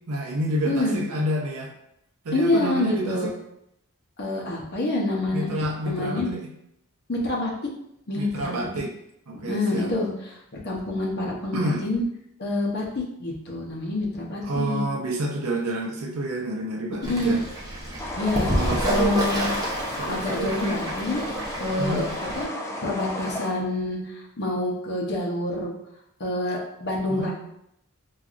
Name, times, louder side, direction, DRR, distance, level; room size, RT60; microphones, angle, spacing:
voice 1, 0.1-1.7 2.2-3.3 5.3-6.5 8.1-9.0 9.3-9.9 11.5-11.8 14.4-17.4 18.4-19.3 20.0-20.5 21.8-22.1 27.1-27.3, right 1 dB, 90° right, 1 dB, 0.6 m, -29 dB
voice 2, 0.7-1.0 2.3-3.3 4.2-5.5 5.8-6.3 7.1-7.5 8.1-8.7 9.5-10.4 10.6-12.0 12.4-14.8 17.1-17.4 18.1-19.6 20.1-21.2 21.6-22.0 22.4-22.5 22.8-25.7 26.2-27.3, left 2 dB, 50° left, -2 dB, 0.8 m, -27 dB
Fowl / Bird, 17.0-22.4, right 1 dB, 20° right, 0.7 m, -30 dB
sound 1, 18.0-23.5, left 1 dB, 15° left, 0.3 m, -33 dB
4.6 x 2.4 x 2.5 m, 0.77 s
head